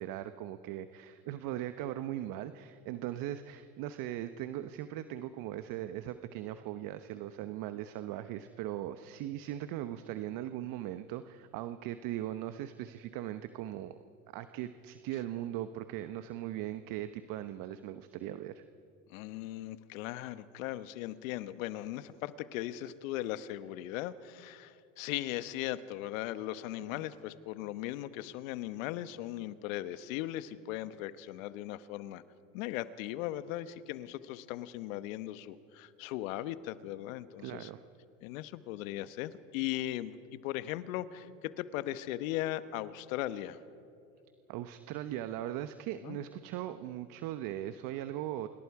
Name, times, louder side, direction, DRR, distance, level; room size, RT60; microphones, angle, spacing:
voice 1, 0.0-13.9 14.3-18.6 37.4-37.8 44.5-48.5, right 12 dB, 50° right, 11 dB, 1.1 m, -39 dB
voice 2, 19.1-32.2 32.5-37.7 38.2-40.2 40.4-43.6 46.0-46.2, left 14 dB, 70° left, 13 dB, 1.2 m, -38 dB
28.5 x 26.5 x 4.9 m, 2.5 s
hypercardioid pair, 95°, 42 cm